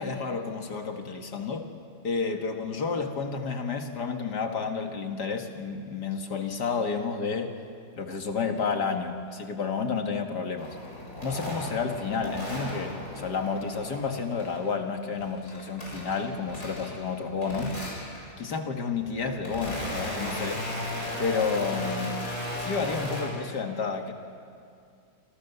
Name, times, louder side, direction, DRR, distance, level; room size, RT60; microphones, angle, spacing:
voice 1, 0.0-1.7 2.0-7.6 8.0-10.8 11.2-17.8 18.4-20.7 21.2-22.2 22.6-24.1, left 5 dB, 65° left, 5 dB, 2.3 m, -31 dB
sound 1, 10.6-14.7 15.0-17.1 17.4-18.3 18.9-23.2, left 1 dB, 45° left, 7.3 m, -36 dB
27.5 x 27.0 x 6.9 m, 2.3 s
omnidirectional pair, 2.0 m